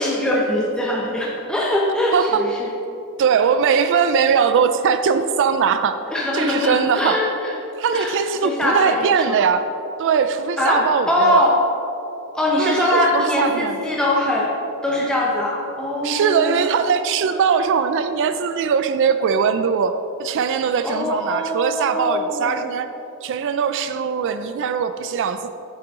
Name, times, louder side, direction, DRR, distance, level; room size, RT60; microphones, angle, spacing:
voice 1, 0.0-2.7 6.1-7.5 7.9-8.1 8.4-9.4 10.6-11.5 12.3-14.5 14.8-16.7 20.8-22.6, left 1 dB, 5° left, -5 dB, 0.8 m, -22 dB
voice 2, 2.1-2.5 3.2-6.0 6.3-7.2 7.8-9.6 10.0-11.4 12.6-13.8 16.0-19.9 20.2-22.9 23.2-25.5, right 6 dB, 55° right, 10 dB, 0.3 m, -20 dB
8.7 x 7.5 x 3.7 m, 2.8 s
head